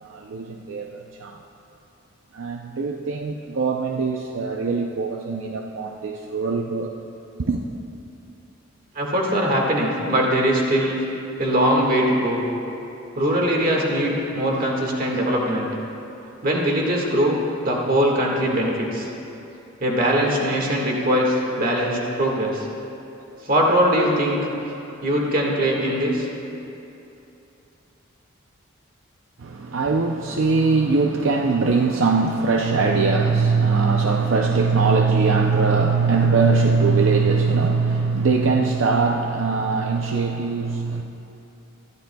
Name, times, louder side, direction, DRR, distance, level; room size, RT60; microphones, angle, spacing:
voice 1, 0.0-1.4 2.3-6.9 7.5-7.6 29.4-41.0, right 4 dB, 70° right, 2 dB, 0.6 m, -21 dB
voice 2, 8.9-11.0 11.4-12.4 13.1-15.7 16.4-19.1 19.8-22.7 23.4-24.5 25.0-26.3, equal, 45° right, -1 dB, 1.8 m, -21 dB
20.5 x 13.0 x 2.3 m, 2.9 s
head